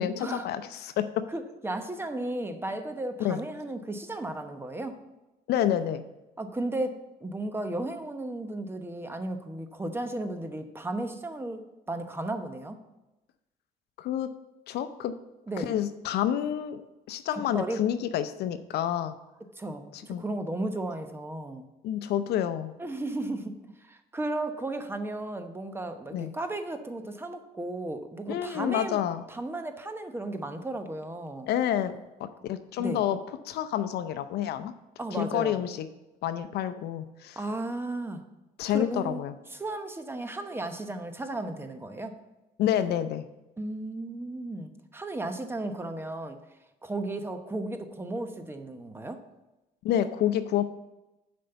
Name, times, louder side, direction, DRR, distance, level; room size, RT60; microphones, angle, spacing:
voice 1, 0.0-1.2 3.2-3.4 5.5-6.0 14.0-14.3 14.7-15.1 15.6-16.8 17.1-19.1 19.9-20.2 21.8-22.7 26.1-26.3 28.3-29.2 31.5-33.2 33.4-34.7 35.1-35.9 36.2-37.4 38.6-39.3 42.6-43.2 49.8-50.6, left 10 dB, 75° left, 11 dB, 0.6 m, -28 dB
voice 2, 1.3-5.0 6.4-12.8 15.5-15.8 17.3-17.8 19.6-21.7 22.8-23.5 23.8-29.0 29.3-31.5 32.8-33.0 35.0-35.6 37.4-38.2 38.7-39.2 39.5-42.2 43.6-46.4 46.8-49.2, right 2 dB, 15° right, 7 dB, 0.9 m, -34 dB
7.6 x 5.3 x 6.8 m, 0.99 s
cardioid pair, 110°, 17 cm